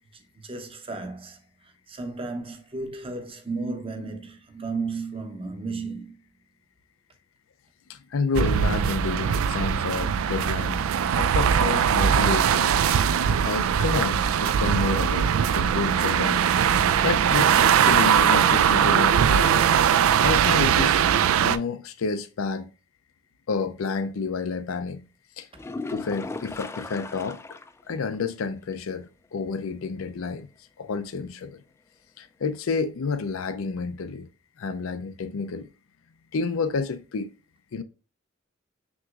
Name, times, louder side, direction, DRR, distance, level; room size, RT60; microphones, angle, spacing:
voice 1, 0.3-1.4 1.9-6.1, right 3 dB, 30° right, 0.7 m, -33 dB
voice 2, 7.9-10.9 11.1-12.8 13.4-16.5 17.0-19.7 20.2-21.1 21.4-22.6 23.5-25.1 25.4-25.5 25.9-27.4 27.9-30.5 30.8-31.6 32.2-34.3 34.6-35.7 36.3-37.3 37.7-37.8, left 4 dB, 85° left, 0.5 m, -30 dB
sound 1, 8.3-21.6, right 8 dB, 90° right, 0.3 m, -21 dB
sound 2, 25.5-27.8 28.1-28.2 28.7-28.8 32.5-32.6, left 3 dB, 15° left, 0.3 m, -36 dB
6.0 x 3.0 x 2.4 m
head